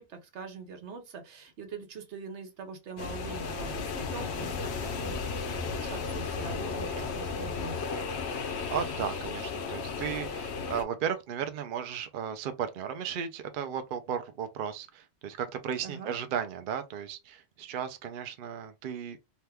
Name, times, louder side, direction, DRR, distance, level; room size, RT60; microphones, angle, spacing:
voice 1, 0.0-7.9 15.8-16.1, right 5 dB, 90° right, 1.1 m, -43 dB
sound 1, 3.0-10.8, left 5 dB, 75° left, 0.9 m, -34 dB
voice 2, 6.7-7.1 8.3-19.2, right 8 dB, 60° right, 0.6 m, -35 dB
2.9 x 2.2 x 3.3 m
omnidirectional pair, 1.1 m